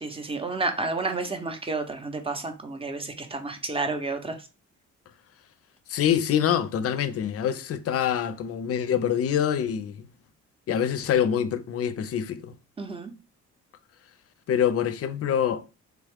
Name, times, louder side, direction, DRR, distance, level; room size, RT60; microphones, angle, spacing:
voice 1, 0.0-4.5 12.8-13.1, right 3 dB, 20° right, 0.6 m, -31 dB
voice 2, 5.9-10.1 10.7-12.5 14.5-15.6, left 9 dB, 50° left, 0.5 m, -25 dB
3.4 x 2.3 x 3.4 m
cardioid pair, 90°, 30 cm